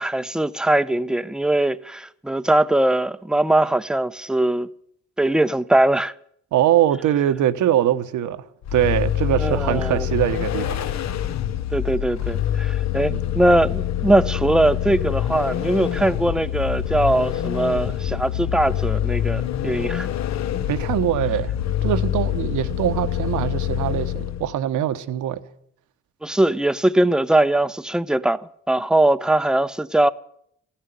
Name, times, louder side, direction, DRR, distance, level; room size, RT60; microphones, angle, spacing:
voice 1, 0.0-4.7 5.2-6.1 9.4-10.1 11.7-20.1 26.2-30.1, right 1 dB, ahead, 0.5 m, -21 dB
voice 2, 6.5-8.4 8.7-10.8 13.1-13.2 20.7-21.5 21.8-25.4, right 11 dB, 80° right, 1.1 m, -22 dB
Vehicle, 8.6-24.6, left 11 dB, 65° left, 0.8 m, -25 dB
14.5 x 10.0 x 9.4 m
cardioid pair, 90°, 30 cm